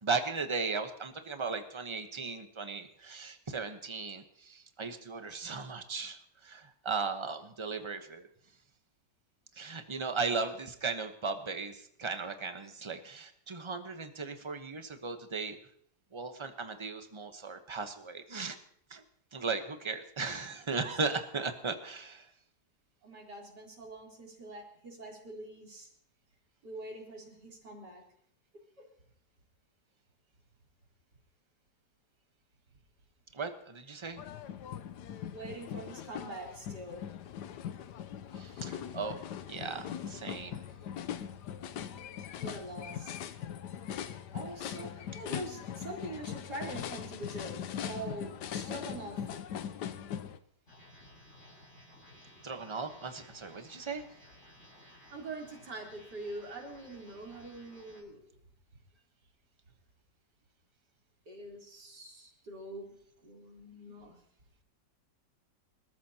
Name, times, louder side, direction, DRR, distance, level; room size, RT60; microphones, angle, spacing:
voice 1, 0.0-8.3 9.6-15.6 16.1-18.6 18.9-19.0 19.3-22.3 33.3-34.2 38.3-39.2 39.5-40.6 52.4-54.0, right 4 dB, 20° right, 7 dB, 0.9 m, -37 dB
voice 2, 23.0-25.9 26.6-28.0 35.3-37.1 42.4-43.2 44.3-49.4 54.9-58.2 61.3-62.9 63.2-64.1, right 2 dB, 70° right, -2 dB, 4.3 m, -44 dB
sound 1, 34.2-50.4, left 9 dB, 75° left, 1.3 m, -41 dB
sound 2, 50.7-58.0, left 1 dB, 45° left, 5.8 m, -57 dB
27.5 x 13.5 x 2.9 m, 0.66 s
omnidirectional pair, 1.9 m